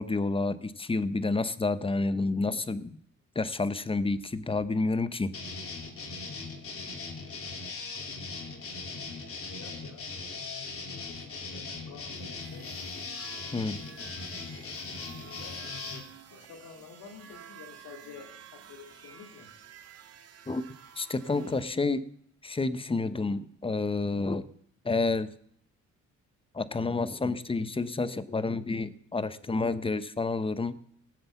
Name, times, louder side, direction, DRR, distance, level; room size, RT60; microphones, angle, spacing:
voice 1, 0.0-2.9 3.3-5.3 13.5-13.8 20.5-20.6 21.0-22.0 22.4-24.5 24.8-25.3 26.5-30.7, left 3 dB, 20° left, 14 dB, 0.9 m, -29 dB
sound 1, 5.3-16.0, left 4 dB, 45° left, 3.0 m, -39 dB
voice 2, 5.7-6.3 7.8-9.0 9.3-10.1 10.9-12.7 15.1-15.6 16.3-19.5 27.1-27.3, left 6 dB, 85° left, 5 dB, 2.5 m, -51 dB
sound 2, 12.1-21.7, right 8 dB, 55° right, 1.5 m, -51 dB
17.5 x 7.6 x 7.1 m, 0.66 s
cardioid pair, 90°, 30 cm